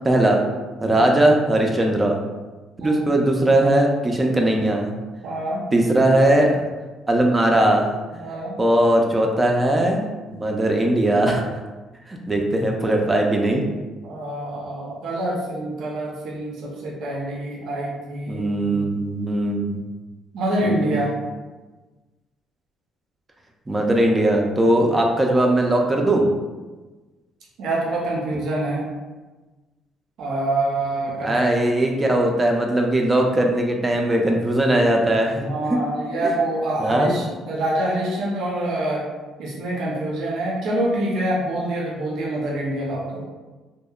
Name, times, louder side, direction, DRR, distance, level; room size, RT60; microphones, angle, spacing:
voice 1, 0.0-0.4 0.8-2.2 2.8-4.9 5.7-6.6 7.1-7.9 8.1-10.0 10.3-11.4 12.1-13.6 18.3-19.8 20.6-20.9 23.7-26.3 31.2-35.5 36.8-37.1, right 1 dB, 15° right, 1 dB, 0.3 m, -19 dB
voice 2, 2.8-3.1 5.2-5.7 8.2-8.6 14.0-18.8 20.3-21.1 24.8-24.9 27.6-28.9 30.2-31.5 35.4-39.1 39.4-43.3, right 1 dB, 65° right, -3 dB, 0.5 m, -26 dB
2.7 x 2.0 x 2.3 m, 1.2 s
cardioid pair, 140°, 0 cm